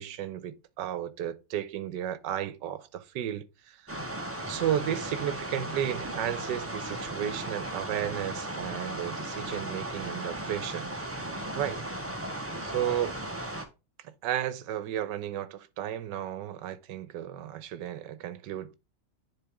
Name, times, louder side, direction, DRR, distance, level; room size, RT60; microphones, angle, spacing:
voice 1, 0.0-3.8 4.5-10.9 11.6-11.8 12.6-13.2 14.0-18.7, right 10 dB, 80° right, 1.3 m, -33 dB
sound 1, 3.9-13.7, right 1 dB, 10° right, 0.7 m, -36 dB
9.9 x 3.7 x 3.5 m
omnidirectional pair, 1.9 m